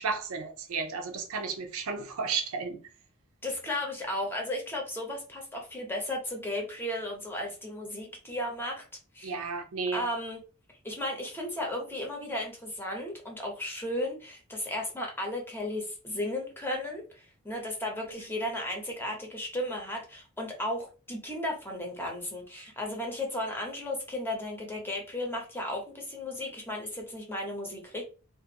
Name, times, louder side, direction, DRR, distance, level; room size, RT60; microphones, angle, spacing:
voice 1, 0.0-2.8 9.2-10.0, right 5 dB, 70° right, 0.5 m, -33 dB
voice 2, 3.4-8.8 9.1-9.3 9.9-10.4 10.8-28.0, left 1 dB, 10° left, 0.8 m, -35 dB
2.5 x 2.4 x 2.8 m
head